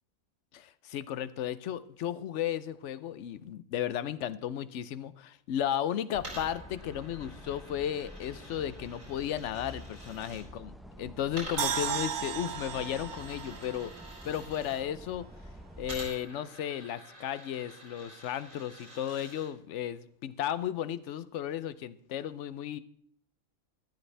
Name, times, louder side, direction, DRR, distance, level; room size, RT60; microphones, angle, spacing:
voice 1, 0.5-10.7 11.0-13.9 14.2-15.3 15.8-22.8, left 10 dB, 65° left, 16 dB, 0.9 m, -34 dB
sound 1, 6.1-16.1, equal, ahead, 0.4 m, -49 dB
Coin (dropping), 6.1-10.4 11.3-14.8 15.8-19.5, right 1 dB, 80° right, 6.1 m, -48 dB
sound 2, 11.6-14.8 15.1-15.2, right 8 dB, 65° right, 1.0 m, -35 dB
14.5 x 12.5 x 3.3 m, 0.63 s
omnidirectional pair, 1.4 m